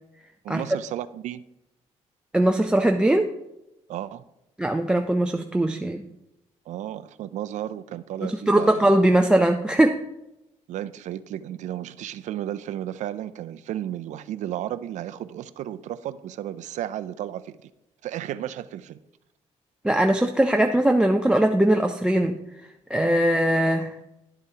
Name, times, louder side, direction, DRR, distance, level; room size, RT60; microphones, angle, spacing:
voice 1, 0.4-1.4 3.9-4.2 6.7-8.8 9.3-9.4 10.7-17.7 18.0-19.0, right 12 dB, 70° right, 0.4 m, -33 dB
voice 2, 2.3-3.3 4.6-6.1 8.3-10.0 19.8-22.4 22.9-23.9, right 1 dB, 5° right, 0.4 m, -20 dB
11.5 x 7.8 x 2.8 m
cardioid pair, 135°, 13 cm